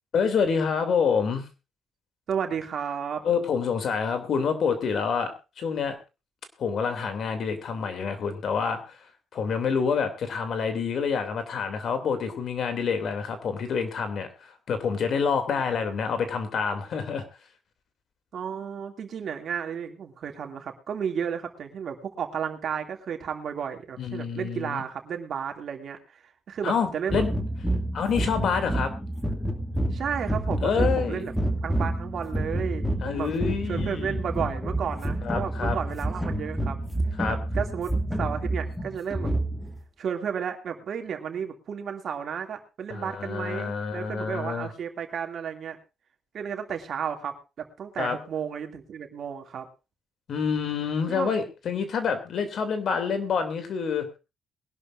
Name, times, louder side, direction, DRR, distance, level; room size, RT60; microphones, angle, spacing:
voice 1, 0.1-1.4 3.2-6.0 6.6-9.0 9.3-14.3 14.7-17.2 24.0-24.8 26.6-27.3 27.9-28.9 30.6-31.3 33.0-34.2 35.2-35.8 37.2-37.4 42.9-44.7 48.0-48.2 50.3-54.1, left 6 dB, 60° left, 8 dB, 2.8 m, -27 dB
voice 2, 2.3-3.2 18.3-26.2 26.5-27.2 29.9-31.3 31.6-33.3 33.7-36.8 37.3-37.9 38.2-39.3 40.0-45.8 46.3-49.7 51.1-51.3, right 7 dB, 60° right, 4 dB, 2.5 m, -33 dB
sound 1, 27.1-39.8, right 1 dB, ahead, 2.4 m, -29 dB
22.5 x 11.5 x 2.6 m, 0.29 s
cardioid pair, 90°, 0 cm